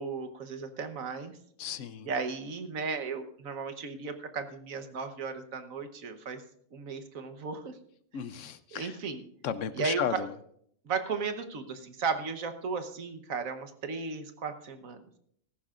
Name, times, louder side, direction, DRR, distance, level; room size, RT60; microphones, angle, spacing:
voice 1, 0.0-1.3 2.1-6.4 6.7-7.7 8.7-9.2 9.7-10.0 10.8-15.2, right 5 dB, 85° right, 8 dB, 1.5 m, -35 dB
voice 2, 1.6-2.1 8.1-9.0 9.4-10.3, left 8 dB, 70° left, 14 dB, 1.0 m, -34 dB
16.5 x 14.5 x 2.5 m, 0.66 s
omnidirectional pair, 1.4 m